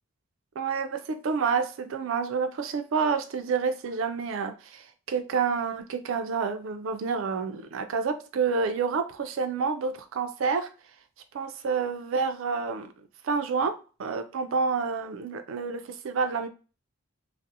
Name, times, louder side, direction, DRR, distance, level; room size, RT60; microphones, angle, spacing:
voice 1, 0.6-10.7 11.3-12.9 13.2-16.5, right 5 dB, 65° right, 0.3 m, -29 dB
2.5 x 2.0 x 2.6 m
head